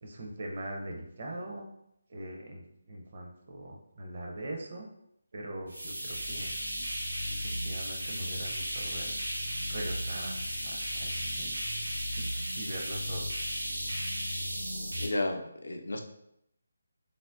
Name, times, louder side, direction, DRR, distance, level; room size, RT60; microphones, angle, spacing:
voice 1, 0.0-1.7 2.1-2.6 2.9-4.9 5.3-6.5 7.3-9.2 9.7-11.7 12.2-13.3, right 1 dB, 40° right, 0 dB, 0.5 m, -41 dB
sound 1, 5.7-15.1, equal, 85° right, 0.6 m, -35 dB
voice 2, 15.0-16.0, left 2 dB, 65° left, 4 dB, 0.3 m, -32 dB
3.4 x 2.1 x 2.4 m, 0.77 s
figure-of-eight pair, 150°, 0 cm